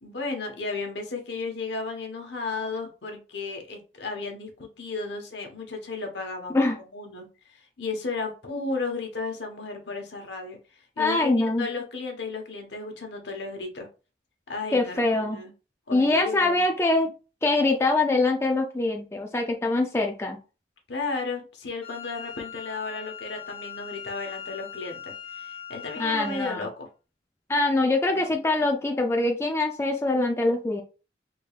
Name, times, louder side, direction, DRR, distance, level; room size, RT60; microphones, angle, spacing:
voice 1, 0.0-6.6 6.9-10.6 11.0-13.9 14.5-15.5 15.9-17.0 20.9-26.9 28.1-28.4, left 3 dB, 75° left, 3 dB, 1.0 m, -34 dB
voice 2, 11.0-11.7 14.7-15.4 15.9-17.1 17.4-20.4 26.0-26.7 27.5-30.8, left 2 dB, 15° left, 3 dB, 0.4 m, -24 dB
Wind instrument woodwind instrument, 21.8-26.6, left 8 dB, 55° left, 1.3 m, -40 dB
3.6 x 3.4 x 2.4 m, 0.33 s
head